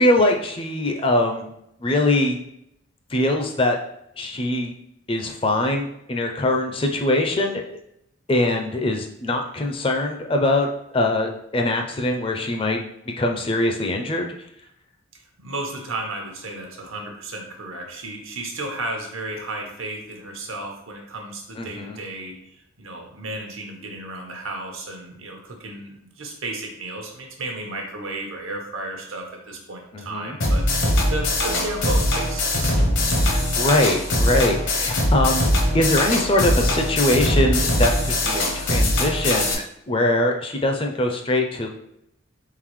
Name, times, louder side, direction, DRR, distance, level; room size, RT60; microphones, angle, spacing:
voice 1, 0.0-1.4 1.8-2.4 3.1-3.8 4.2-4.7 5.1-7.8 8.3-12.8 13.2-14.3 21.6-22.0 29.9-30.4 33.2-35.5 35.7-41.7, left 1 dB, 25° left, 3 dB, 0.4 m, -22 dB
voice 2, 15.4-22.3 22.8-32.8, right 2 dB, 80° right, 2 dB, 0.9 m, -33 dB
sound 1, 30.4-39.5, left 1 dB, 65° left, 0.8 m, -21 dB
3.9 x 3.8 x 3.1 m, 0.80 s
head